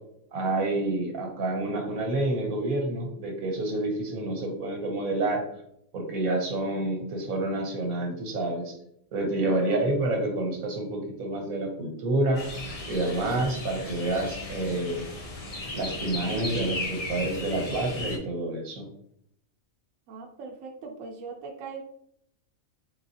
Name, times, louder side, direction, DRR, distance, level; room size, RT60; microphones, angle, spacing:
voice 1, 0.3-5.4 5.9-8.7 9.1-12.4 12.9-15.1 15.7-18.9, right 2 dB, 90° right, 2 dB, 1.4 m, -28 dB
voice 2, 9.4-9.9 20.1-21.8, right 4 dB, 75° right, 1 dB, 1.0 m, -40 dB
sound 1, 12.3-18.2, left 2 dB, 40° left, 0.5 m, -36 dB
3.9 x 3.7 x 2.7 m, 0.71 s
omnidirectional pair, 1.4 m